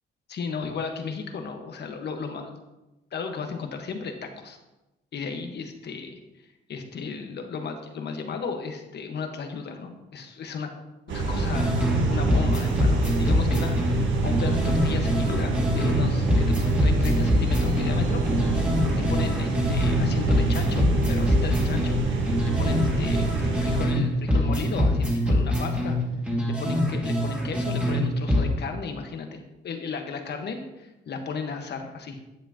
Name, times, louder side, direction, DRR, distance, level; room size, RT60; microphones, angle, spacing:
voice 1, 0.3-2.6 3.1-4.6 5.1-6.2 6.7-10.7 11.1-18.2 19.1-22.3 22.6-26.0 26.5-32.2, left 5 dB, 60° left, 5 dB, 1.3 m, -34 dB
sound 1, 11.1-23.9, right 3 dB, 75° right, 1.5 m, -26 dB
sound 2, 11.5-12.0 12.3-16.0 16.3-20.0 20.3-24.0 24.3-28.0 28.3-28.5, equal, 5° right, 2.3 m, -24 dB
10.0 x 8.0 x 2.9 m, 1.0 s
cardioid pair, 90°, 20 cm